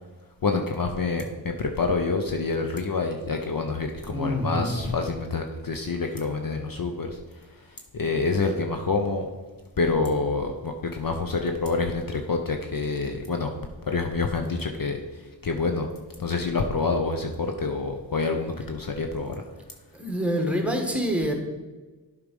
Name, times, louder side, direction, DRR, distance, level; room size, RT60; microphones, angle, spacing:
voice 1, 0.4-9.3 9.8-15.9 16.2-19.4, left 4 dB, 45° left, 4 dB, 0.8 m, -27 dB
voice 2, 4.1-4.8 19.9-21.3, equal, 5° right, 2 dB, 1.6 m, -26 dB
8.2 x 4.9 x 5.3 m, 1.3 s
cardioid pair, 45°, 46 cm